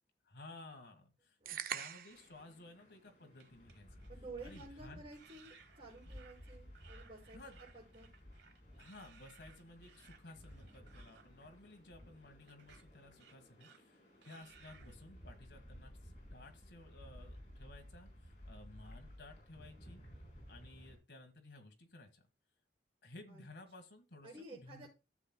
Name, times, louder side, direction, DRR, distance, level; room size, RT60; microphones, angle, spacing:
voice 1, 0.2-1.4 1.7-4.0 4.4-5.0 7.3-7.6 8.8-20.0 20.5-22.2 23.0-24.9, left 2 dB, 75° left, 5 dB, 1.6 m, -56 dB
voice 2, 1.4-1.9 4.1-8.1 23.3-23.4 24.2-24.9, right 3 dB, 30° right, -5 dB, 5.3 m, -52 dB
sound 1, 1.5-2.3, right 8 dB, 50° right, 0.5 m, -41 dB
sound 2, 2.1-21.0, equal, 45° left, 4.3 m, -56 dB
sound 3, 3.3-4.1 4.4-4.7 5.1-11.3 12.5-12.8 13.2-14.0 14.2-15.0, right 6 dB, 80° right, 1.1 m, -63 dB
14.0 x 7.5 x 2.3 m, 0.28 s
head